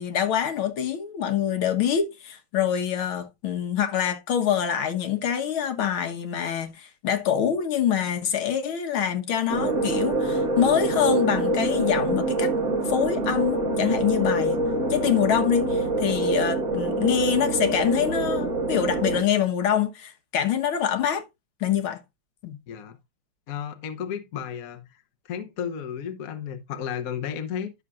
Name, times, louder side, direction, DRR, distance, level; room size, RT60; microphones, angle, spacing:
voice 1, 0.0-12.5 12.9-14.6 14.9-21.2 21.6-22.0 22.4-22.6, left 9 dB, 75° left, 2.0 m, -25 dB
sound 1, 9.5-19.2, right 2 dB, 40° right, 1.4 m, -25 dB
voice 2, 22.7-23.0 23.5-25.0 25.3-27.7, left 8 dB, 50° left, 1.2 m, -33 dB
11.5 x 6.6 x 2.4 m
omnidirectional pair, 2.3 m